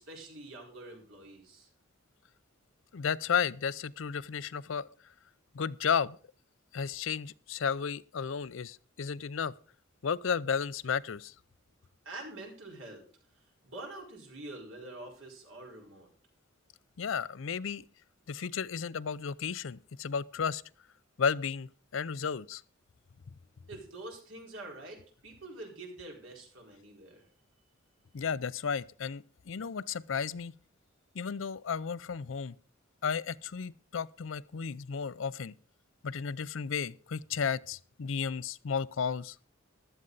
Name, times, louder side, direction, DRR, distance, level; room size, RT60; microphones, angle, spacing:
voice 1, 0.0-1.7 12.0-13.0 13.3-16.1 23.7-27.3, right 2 dB, 70° right, 4.6 m, -46 dB
voice 2, 2.9-4.9 5.5-6.2 6.7-9.5 10.0-11.3 17.0-17.8 18.3-20.6 21.2-22.6 28.1-30.5 31.1-32.5 33.0-35.5 36.0-39.4, left 6 dB, 70° left, 0.5 m, -33 dB
15.0 x 12.0 x 4.0 m
head